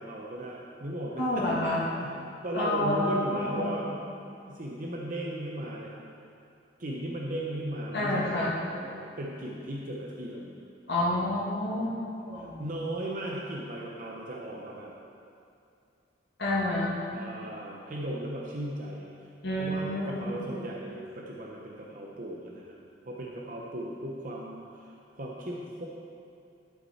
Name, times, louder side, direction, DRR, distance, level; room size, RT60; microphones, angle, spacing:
voice 1, 0.0-2.2 2.4-4.1 4.5-6.0 6.8-10.5 12.4-14.9 17.1-19.1 19.6-22.8 23.0-24.9 25.2-25.9, right 1 dB, 50° right, -2 dB, 0.8 m, -37 dB
voice 2, 1.2-1.8 2.5-3.7 7.9-8.5 10.9-11.9 12.3-12.6 16.4-16.9 19.4-20.2, left 1 dB, 70° left, -8 dB, 1.7 m, -28 dB
11.5 x 6.0 x 4.2 m, 2.6 s
head